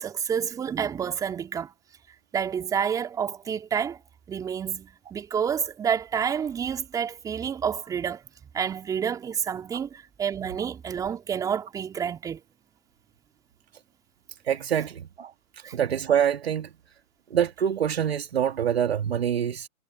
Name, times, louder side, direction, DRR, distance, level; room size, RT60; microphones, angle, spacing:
voice 1, 0.0-1.7 2.3-4.0 4.3-8.2 8.5-12.4 15.6-15.7, right 7 dB, 10° right, 4.3 m, -29 dB
voice 2, 14.5-15.3 15.7-16.7 17.3-19.7, right 9 dB, 45° right, 2.8 m, -25 dB
hypercardioid pair, 150°, 42 cm